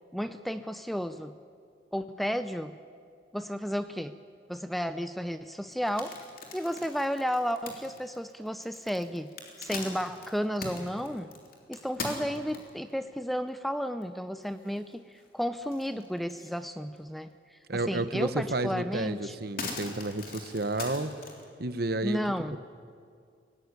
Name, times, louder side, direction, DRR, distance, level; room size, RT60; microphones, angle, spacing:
voice 1, 0.1-1.4 1.9-2.8 3.3-4.1 4.5-6.2 6.5-9.3 9.6-11.3 11.7-19.4 22.0-22.6, equal, ahead, 11 dB, 0.5 m, -33 dB
sound 1, 5.7-12.9 13.5-13.6 14.0-14.1 14.4-15.3 15.6-16.6 17.0-17.1 18.4-18.5 18.9-21.4, left 3 dB, 50° left, 3.5 m, -41 dB
voice 2, 17.7-21.1 21.6-22.2, right 2 dB, 55° right, 12 dB, 1.1 m, -31 dB
23.0 x 18.0 x 9.7 m, 2.2 s
head